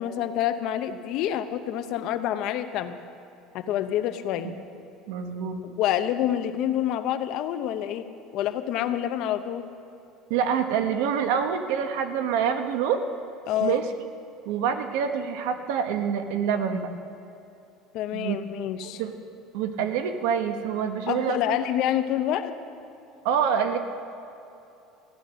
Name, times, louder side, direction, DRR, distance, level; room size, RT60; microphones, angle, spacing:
voice 1, 0.0-3.0 3.5-4.5 5.6-8.0 8.3-9.7 13.5-13.8 17.9-19.0 21.1-22.5, left 11 dB, 50° left, 10 dB, 0.7 m, -27 dB
voice 2, 5.1-5.6 10.3-13.0 13.6-13.9 14.4-16.9 18.1-18.4 18.8-19.1 19.5-21.6 23.2-23.8, right 7 dB, 80° right, 7 dB, 1.1 m, -26 dB
15.0 x 11.0 x 6.3 m, 2.8 s
cardioid pair, 160°, 0 cm